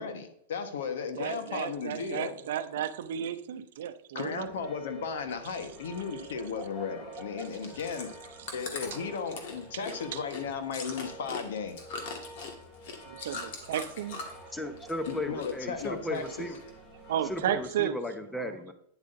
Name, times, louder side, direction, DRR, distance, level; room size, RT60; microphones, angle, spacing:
voice 1, 0.0-2.3 4.1-8.1 8.5-12.0 15.1-16.5, left 6 dB, 80° left, 8 dB, 1.2 m, -35 dB
voice 2, 1.2-4.5 8.4-8.5 10.1-10.2 13.2-14.4 17.1-18.0 18.4-18.5, right 10 dB, 75° right, 11 dB, 0.6 m, -33 dB
sound 1, 4.4-17.7, right 2 dB, 25° left, 2.2 m, -49 dB
Chewing mastication, 7.4-14.5 14.8-15.5 15.8-16.7 17.2-17.3, left 4 dB, 65° left, 1.8 m, -41 dB
voice 3, 14.5-16.6 17.3-18.7, left 1 dB, 5° left, 8 dB, 0.8 m, -35 dB
9.6 x 7.8 x 2.6 m, 0.71 s
supercardioid pair, 145°, 0 cm